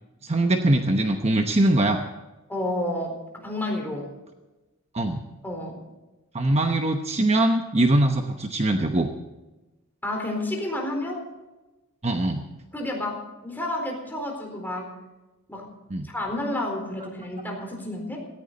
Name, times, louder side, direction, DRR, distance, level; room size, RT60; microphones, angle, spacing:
voice 1, 0.2-2.0 4.9-5.2 6.3-9.1 12.0-12.5 15.9-16.1, right 1 dB, 30° right, 5 dB, 0.9 m, -22 dB
voice 2, 2.5-4.1 5.4-5.8 10.0-11.2 12.7-14.9 15.5-15.7 16.0-18.3, left 1 dB, 10° left, 1 dB, 4.1 m, -30 dB
17.5 x 15.5 x 4.0 m, 1.1 s
head